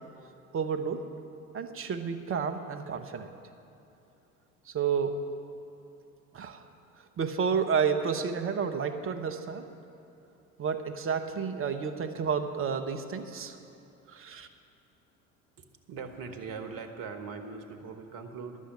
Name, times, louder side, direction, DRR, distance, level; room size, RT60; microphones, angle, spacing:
voice 1, 0.5-1.1 1.5-3.3 4.7-5.2 6.3-6.6 7.2-9.7 10.6-13.6 14.1-14.5, right 6 dB, 30° right, 7 dB, 0.8 m, -30 dB
voice 2, 15.6-18.6, right 5 dB, 50° right, 6 dB, 1.3 m, -41 dB
11.5 x 7.3 x 7.9 m, 2.8 s
figure-of-eight pair, 65°, 43 cm